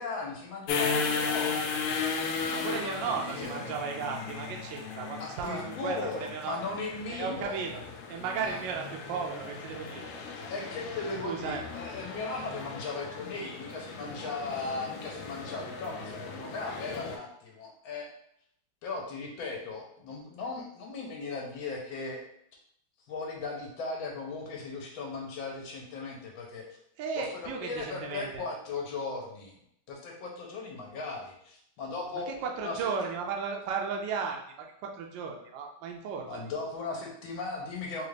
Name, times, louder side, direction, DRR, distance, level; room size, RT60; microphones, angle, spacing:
voice 1, 0.0-1.8 2.2-3.8 5.2-7.6 8.4-8.6 10.5-18.1 18.8-22.2 23.1-26.7 27.1-29.5 29.9-32.9 36.3-38.0, left 3 dB, 75° left, 0 dB, 1.5 m, -37 dB
sound 1, 0.7-17.2, left 5 dB, 90° left, 1.5 m, -36 dB
voice 2, 2.5-6.6 7.1-7.8 8.1-10.1 11.2-11.6 27.0-28.4 32.1-36.5, right 5 dB, 75° right, 1 dB, 1.1 m, -35 dB
4.0 x 2.4 x 3.2 m, 0.71 s
omnidirectional pair, 2.3 m